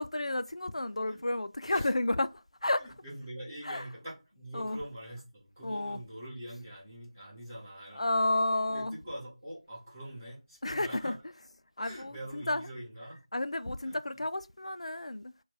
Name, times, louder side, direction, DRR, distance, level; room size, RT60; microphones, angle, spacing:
voice 1, 0.0-2.3 2.6-2.9 3.6-3.9 4.5-4.8 5.6-6.0 7.9-9.0 10.6-11.2 11.8-12.7 13.3-15.3, left 2 dB, 80° left, 0.3 m, -31 dB
voice 2, 2.8-8.1 8.6-11.1 11.8-13.2 13.8-14.2, right 1 dB, 15° right, 1.5 m, -44 dB
4.5 x 2.2 x 3.3 m
figure-of-eight pair, 175°, 3 cm